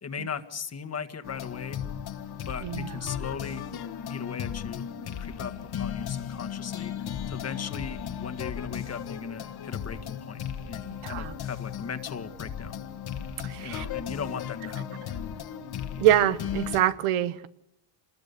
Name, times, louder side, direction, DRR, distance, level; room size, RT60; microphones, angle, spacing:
voice 1, 0.0-1.8 2.4-3.6 4.1-6.9 7.3-12.8 13.6-15.0, left 6 dB, 30° left, 1.7 m, -38 dB
sound 1, 1.2-16.8, left 9 dB, 50° left, 1.8 m, -36 dB
voice 2, 2.6-3.0 11.0-11.3 13.4-13.9 16.0-17.5, right 12 dB, 80° right, 1.3 m, -25 dB
26.0 x 20.5 x 6.9 m
cardioid pair, 110°, 49 cm